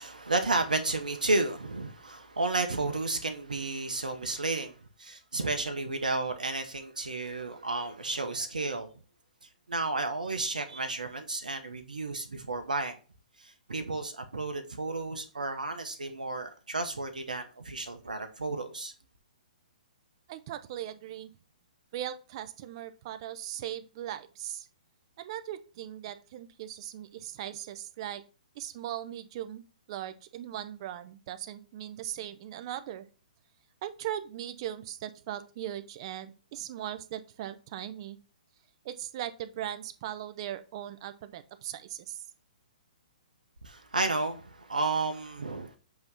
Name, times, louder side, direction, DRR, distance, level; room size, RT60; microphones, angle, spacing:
voice 1, 0.0-8.9 9.7-13.0 13.4-18.9 43.6-45.7, right 3 dB, 90° right, 0.8 m, -32 dB
voice 2, 20.3-21.3 21.9-24.7 25.2-28.2 28.5-29.6 29.9-33.0 33.8-38.2 38.8-42.2, right 11 dB, 45° right, 0.7 m, -39 dB
7.6 x 3.0 x 5.5 m
hypercardioid pair, 130°, 4 cm